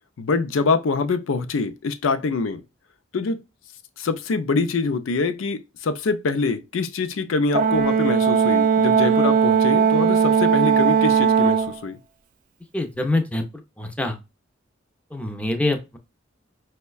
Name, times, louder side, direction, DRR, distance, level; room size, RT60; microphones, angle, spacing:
voice 1, 0.2-2.6 3.1-3.4 4.0-12.0, left 4 dB, 80° left, 0.4 m, -24 dB
Brass instrument, 7.5-11.8, right 6 dB, 45° right, 0.4 m, -18 dB
voice 2, 12.7-13.4 13.8-14.2 15.1-16.0, left 2 dB, 5° left, 0.5 m, -25 dB
5.3 x 2.2 x 2.2 m
head